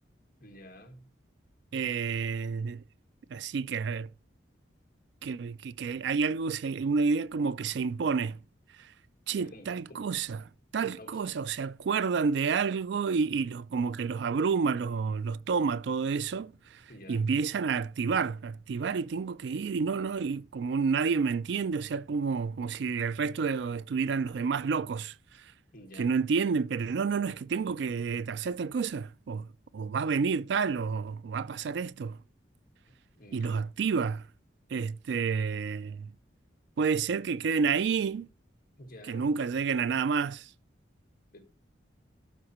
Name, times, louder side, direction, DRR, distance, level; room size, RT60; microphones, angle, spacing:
voice 1, 0.4-1.1 9.3-10.0 10.8-11.3 16.9-17.3 25.7-26.1 33.2-33.7 38.8-39.3 41.3-41.4, left 1 dB, 45° left, 1.5 m, -50 dB
voice 2, 1.7-2.8 3.3-4.1 5.2-8.4 8.8-8.9 9.3-10.4 10.7-16.8 17.1-25.1 26.0-29.5 29.7-32.2 33.3-34.3 34.7-36.1 36.8-38.3 39.1-40.5, right 5 dB, 65° right, 0.3 m, -29 dB
12.5 x 4.4 x 3.0 m
head